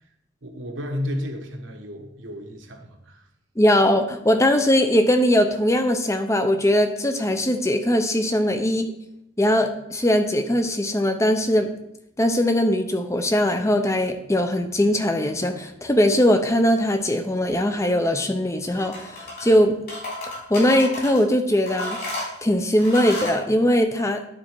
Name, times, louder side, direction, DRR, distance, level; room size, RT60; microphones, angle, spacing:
voice 1, 0.4-3.2 8.5-8.6, left 1 dB, 75° right, 3 dB, 1.3 m, -32 dB
voice 2, 3.6-8.8 9.4-11.7 12.2-19.8 20.5-22.0 22.4-24.2, left 1 dB, 15° left, 7 dB, 0.6 m, -20 dB
sound 1, 18.7-19.6 19.9-21.2 21.7-23.4, left 2 dB, 50° left, 3.6 m, -32 dB
11.0 x 4.2 x 4.6 m, 0.83 s
head